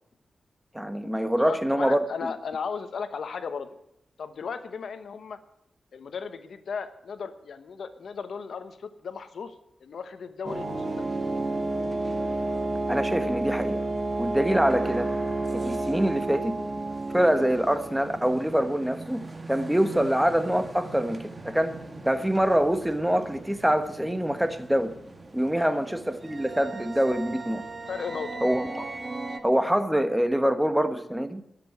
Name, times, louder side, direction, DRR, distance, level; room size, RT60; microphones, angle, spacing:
voice 1, 0.7-2.0 12.9-13.8 14.2-15.1 15.6-16.5 17.1-19.2 19.5-21.7 22.0-24.9 25.3-27.6 28.4-28.8 29.4-31.4, equal, 5° right, 10 dB, 1.3 m, -25 dB
voice 2, 1.4-3.8 4.2-5.4 5.9-9.5 9.8-11.0 25.6-25.8 27.9-28.4, left 5 dB, 80° left, 11 dB, 1.0 m, -36 dB
sound 1, 10.4-29.4, right 2 dB, 30° right, 1.8 m, -33 dB
12.5 x 6.9 x 9.6 m, 0.81 s
cardioid pair, 60°, 0 cm